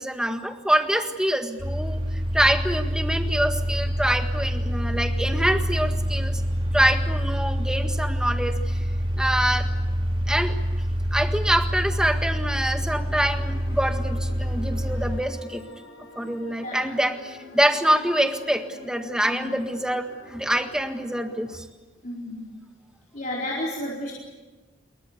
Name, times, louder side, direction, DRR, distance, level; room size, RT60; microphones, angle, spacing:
voice 1, 0.0-2.0 2.3-6.4 6.7-8.8 9.2-9.7 10.3-10.5 11.1-15.6 16.1-21.6, right 1 dB, 5° right, 6 dB, 1.7 m, -25 dB
sound 1, 1.6-15.2, equal, 30° right, 4.1 m, -26 dB
sound 2, 12.7-21.4, left 3 dB, 75° left, 6.9 m, -46 dB
voice 2, 16.6-17.0 19.3-19.5 22.0-22.4 23.1-24.1, left 1 dB, 45° left, -4 dB, 4.4 m, -32 dB
26.5 x 23.0 x 8.3 m, 1.2 s
head